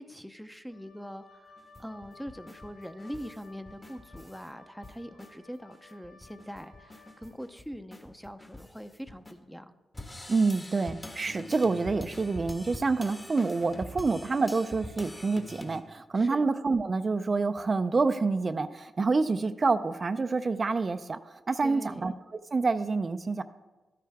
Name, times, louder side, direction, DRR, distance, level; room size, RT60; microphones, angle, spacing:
voice 1, 0.0-9.7 16.1-16.5 21.6-22.2, equal, ahead, 10 dB, 0.6 m, -43 dB
Wind instrument woodwind instrument, 0.7-7.4, left 3 dB, 70° left, 2.0 m, -56 dB
sound 1, 1.6-4.5 4.8-5.3 5.7-5.8 6.0-9.3 9.9-15.8, left 1 dB, 25° left, 1.4 m, -45 dB
voice 2, 10.3-22.1 22.5-23.4, right 4 dB, 45° right, 10 dB, 0.4 m, -27 dB
12.5 x 9.4 x 3.5 m, 1.2 s
cardioid pair, 60°, 0 cm